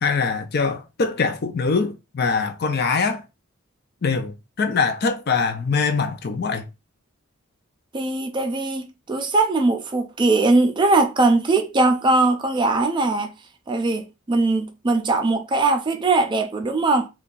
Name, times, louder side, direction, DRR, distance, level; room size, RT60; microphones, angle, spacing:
voice 1, 0.0-3.2 4.0-6.7, left 4 dB, 50° left, 0.4 m, -23 dB
voice 2, 7.9-13.3 13.7-17.1, right 2 dB, 20° right, 0.4 m, -20 dB
2.7 x 2.3 x 3.8 m
head